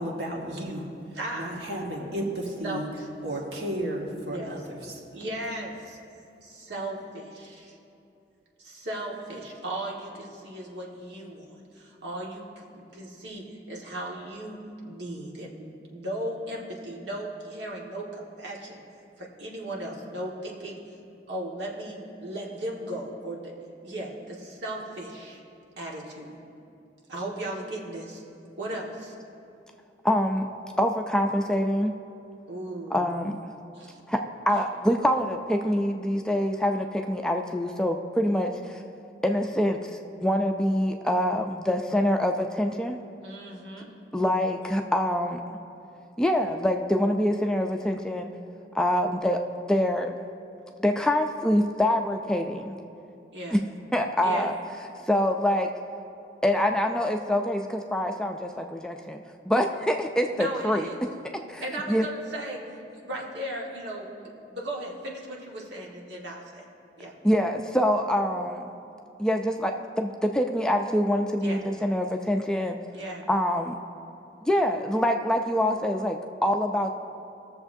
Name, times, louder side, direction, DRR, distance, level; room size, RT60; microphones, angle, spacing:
voice 1, 0.0-2.9 3.2-4.9, right 1 dB, 70° right, -1 dB, 1.6 m, -33 dB
voice 2, 1.1-1.6 2.6-2.8 4.3-4.5 5.1-6.0 6.4-7.8 8.6-14.6 14.8-18.8 19.2-20.8 21.3-23.5 23.8-25.4 25.8-26.4 27.1-28.2 28.6-29.1 32.5-33.1 33.8-34.0 43.2-43.9 53.3-53.6 54.2-54.5 60.3-61.0 61.6-62.6 62.9-66.6 67.0-67.1 71.4-71.6 72.9-73.3, right 1 dB, 85° right, -2 dB, 1.6 m, -36 dB
voice 3, 30.0-30.5 30.8-31.9 32.9-33.4 34.1-34.2 34.5-38.8 39.2-43.0 44.1-45.4 46.2-48.3 48.7-49.4 49.7-50.1 50.8-52.8 53.5-53.6 53.9-54.5 55.1-55.7 56.4-59.2 59.5-60.9 61.5-62.0 67.2-68.6 69.2-69.7 70.0-72.8 73.3-73.8 74.4-77.0, equal, 5° left, 3 dB, 0.4 m, -25 dB
20.5 x 6.9 x 2.7 m, 2.7 s
head